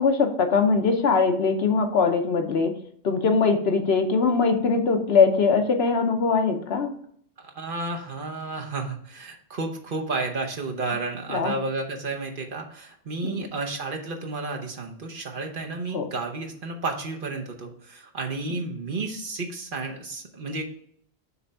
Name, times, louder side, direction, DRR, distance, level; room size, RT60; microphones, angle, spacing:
voice 1, 0.0-2.7 3.0-6.9 11.3-11.5 13.2-13.5 15.9-16.0, left 4 dB, 70° left, 5 dB, 1.1 m, -21 dB
voice 2, 7.4-20.6, right 3 dB, 55° right, 2 dB, 1.1 m, -32 dB
6.8 x 3.5 x 5.4 m, 0.62 s
omnidirectional pair, 1.1 m